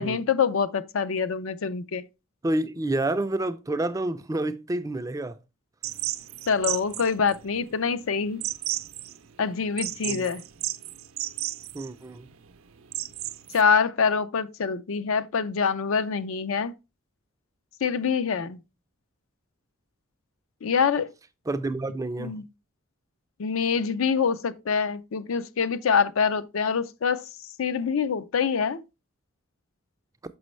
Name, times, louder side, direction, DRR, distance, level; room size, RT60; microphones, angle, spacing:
voice 1, 0.0-2.1 6.5-8.4 9.4-10.4 13.5-16.7 17.8-18.6 20.6-21.1 22.2-22.4 23.4-27.3 27.6-28.8, left 6 dB, 70° left, 0.5 m, -25 dB
voice 2, 2.4-5.4 10.0-10.3 11.7-12.3 21.5-22.3, right 2 dB, 15° right, 0.4 m, -29 dB
sound 1, 5.8-13.6, right 14 dB, 75° right, 0.6 m, -34 dB
6.2 x 6.0 x 3.1 m
head